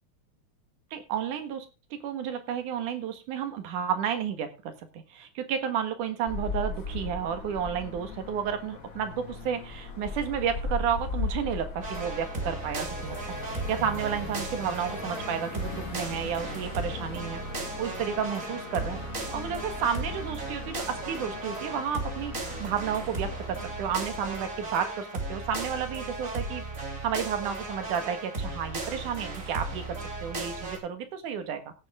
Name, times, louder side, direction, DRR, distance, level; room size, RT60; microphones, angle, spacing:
voice 1, 0.9-1.7 1.9-13.2 13.5-19.0 19.3-22.3 22.6-26.6 27.0-30.0 30.2-31.6, right 8 dB, 70° right, 8 dB, 2.9 m, -32 dB
sound 1, 6.2-24.4, left 3 dB, 50° left, 1.0 m, -39 dB
sound 2, 11.8-30.8, right 2 dB, 25° right, 2.6 m, -36 dB
16.0 x 8.0 x 3.6 m, 0.30 s
omnidirectional pair, 3.7 m